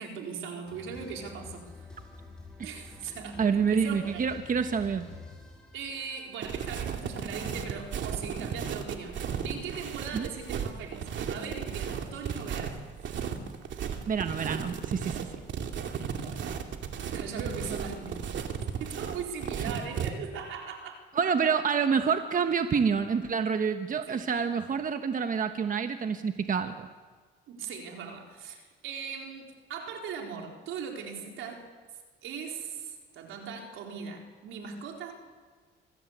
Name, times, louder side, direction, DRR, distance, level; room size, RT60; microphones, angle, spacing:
voice 1, 0.0-1.7 2.6-4.3 5.7-9.2 9.4-12.8 16.0-16.4 17.1-21.0 24.1-24.2 27.5-31.7 32.2-35.1, right 6 dB, 85° right, 2 dB, 4.3 m, -40 dB
sound 1, 0.7-6.8, left 3 dB, 5° left, 7.1 m, -48 dB
voice 2, 3.4-5.1 10.1-10.3 14.1-15.2 19.6-19.7 21.1-26.9, right 6 dB, 45° right, 7 dB, 1.3 m, -27 dB
sound 2, 6.4-20.1, right 7 dB, 70° right, 2.4 m, -35 dB
25.5 x 16.5 x 8.2 m, 1.5 s
cardioid pair, 90°, 20 cm